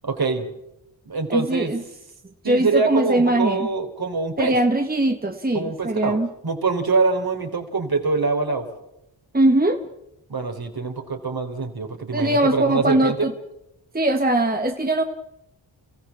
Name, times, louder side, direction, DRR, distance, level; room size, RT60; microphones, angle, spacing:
voice 1, 0.0-0.5 1.1-1.7 2.4-4.6 5.5-6.2 6.4-8.6 10.3-13.3, right 4 dB, 50° right, 4 dB, 4.2 m, -24 dB
voice 2, 1.3-1.8 2.4-3.7 4.4-6.3 9.3-9.8 12.1-13.3 13.9-15.0, right 1 dB, 20° right, 5 dB, 1.7 m, -21 dB
29.0 x 15.5 x 7.4 m, 0.85 s
supercardioid pair, 40°, 46 cm